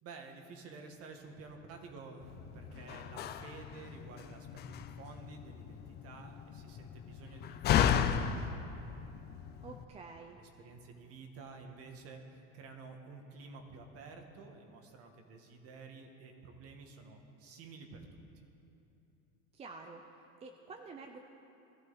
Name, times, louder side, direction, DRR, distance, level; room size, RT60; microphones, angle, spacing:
voice 1, 0.0-8.7 9.4-9.6 10.3-18.4, right 4 dB, 40° right, 4 dB, 1.7 m, -51 dB
Slam, 2.2-9.8, left 9 dB, 30° left, 0.5 m, -35 dB
voice 2, 9.6-10.4 19.5-20.0 20.4-21.2, right 4 dB, 20° right, 4 dB, 0.6 m, -48 dB
19.5 x 14.0 x 4.1 m, 2.9 s
cardioid pair, 150°, 35 cm